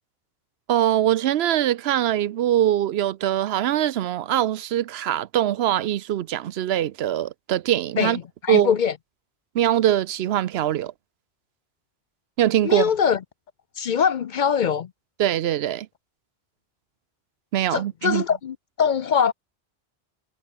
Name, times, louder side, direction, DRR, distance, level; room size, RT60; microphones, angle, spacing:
voice 1, 0.7-8.2 8.5-8.7 9.5-10.9 12.4-12.9 15.2-15.9 17.5-18.2, right 11 dB, 75° right, 0.8 m, -22 dB
voice 2, 8.0-8.9 12.6-13.2 13.8-14.9 17.7-19.3, left 7 dB, 55° left, 0.6 m, -22 dB
omnidirectional pair, 1.1 m